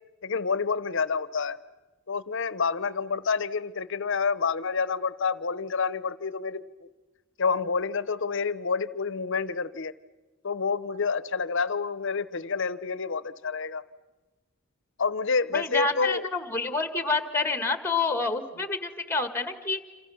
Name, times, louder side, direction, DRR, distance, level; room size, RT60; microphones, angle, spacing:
voice 1, 0.2-1.6 2.1-6.6 7.4-9.9 10.4-13.8 15.0-16.2, left 5 dB, 65° left, 18 dB, 0.8 m, -28 dB
voice 2, 15.5-19.8, left 3 dB, 10° left, 10 dB, 1.6 m, -28 dB
27.5 x 27.0 x 7.0 m, 1.2 s
head